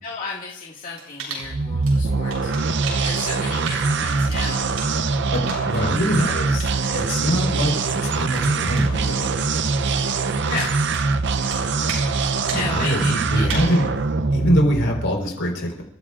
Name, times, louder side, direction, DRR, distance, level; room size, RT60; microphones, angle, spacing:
voice 1, 0.0-4.7 10.4-10.7 12.5-13.5, left 4 dB, 40° left, -4 dB, 2.0 m, -33 dB
sound 1, 1.0-12.1 12.4-12.7 13.0-14.0, right 4 dB, 90° right, 7.1 m, -37 dB
sound 2, 1.4-15.2, right 4 dB, 60° right, 0.6 m, -23 dB
voice 2, 5.3-9.4 12.5-13.9 14.3-15.8, equal, 70° left, 1 dB, 4.3 m, -24 dB
29.5 x 15.0 x 2.5 m, 0.73 s
head